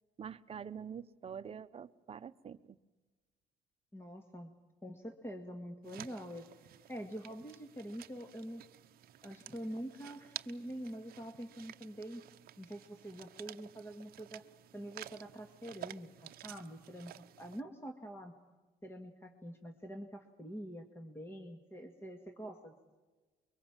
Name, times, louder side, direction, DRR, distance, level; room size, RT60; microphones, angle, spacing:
voice 1, 0.2-2.8, right 7 dB, 35° right, 11 dB, 1.0 m, -46 dB
voice 2, 3.9-4.5 4.8-6.5 6.9-8.6 9.2-12.2 12.6-14.5 14.7-18.3 18.8-22.7, equal, 15° left, 5 dB, 2.0 m, -45 dB
sound 1, 5.8-17.6, right 13 dB, 60° right, 0.8 m, -52 dB
24.5 x 23.0 x 7.4 m, 1.2 s
cardioid pair, 110°, 17 cm